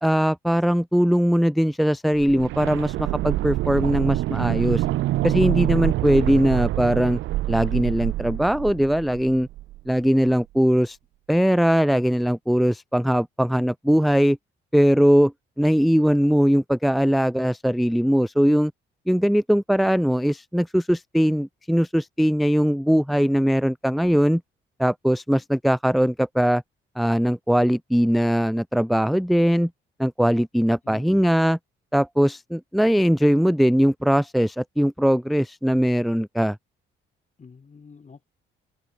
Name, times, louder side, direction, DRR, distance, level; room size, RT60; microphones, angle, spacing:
voice 1, 0.0-4.8 5.2-7.2 7.5-9.5 9.9-11.0 11.3-14.4 14.7-15.3 15.6-18.7 19.1-24.4 24.8-26.6 27.0-29.7 30.0-31.6 31.9-36.6, equal, ahead, 0.5 m, -20 dB
sound 1, 2.2-10.0 10.2-10.3, right 16 dB, 75° right, 0.5 m, -26 dB
voice 2, 30.8-31.3 37.4-38.2, left 5 dB, 35° left, 7.7 m, -45 dB
open air
cardioid pair, 90°, 20 cm